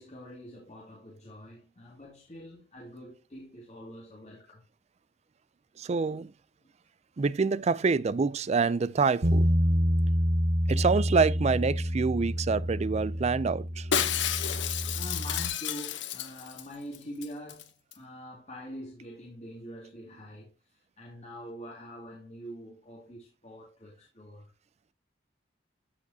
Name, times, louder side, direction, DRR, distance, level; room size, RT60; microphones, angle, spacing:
voice 1, 0.0-4.6 14.9-24.5, equal, 40° left, 2.5 m, -45 dB
voice 2, 5.8-6.3 7.2-9.5 10.7-13.9, right 4 dB, 35° right, 0.4 m, -26 dB
Bass guitar, 9.2-15.5, equal, 75° right, 1.1 m, -28 dB
Shatter, 13.9-16.7 16.9-17.0 17.2-17.6 17.9-18.0, left 9 dB, 70° left, 0.9 m, -31 dB
13.5 x 5.0 x 2.8 m
head